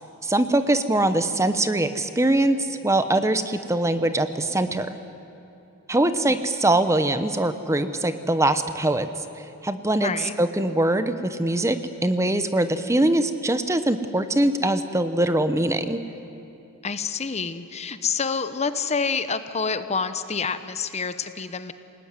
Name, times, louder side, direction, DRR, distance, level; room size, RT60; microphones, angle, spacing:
voice 1, 0.2-5.0 5.9-9.1 9.6-16.0, right 1 dB, 15° right, 10 dB, 0.9 m, -22 dB
voice 2, 10.0-10.3 16.8-21.7, left 5 dB, 30° left, 11 dB, 0.8 m, -28 dB
28.5 x 18.5 x 9.7 m, 2.9 s
head